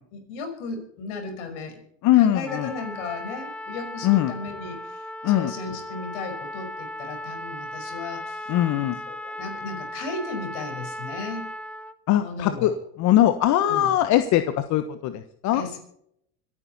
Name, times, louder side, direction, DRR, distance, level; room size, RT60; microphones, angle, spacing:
voice 1, 0.1-1.8 2.2-8.5 9.1-11.5 12.2-12.7 13.5-13.9 15.5-15.8, left 3 dB, 75° left, 5 dB, 5.5 m, -35 dB
voice 2, 2.0-2.7 4.0-4.3 5.2-5.5 8.5-9.0 12.1-12.7 13.0-15.6, left 13 dB, 50° left, 10 dB, 1.3 m, -21 dB
Trumpet, 2.5-12.0, left 1 dB, 5° left, 0.8 m, -36 dB
26.0 x 10.0 x 4.2 m, 0.72 s
supercardioid pair, 100°, 35 cm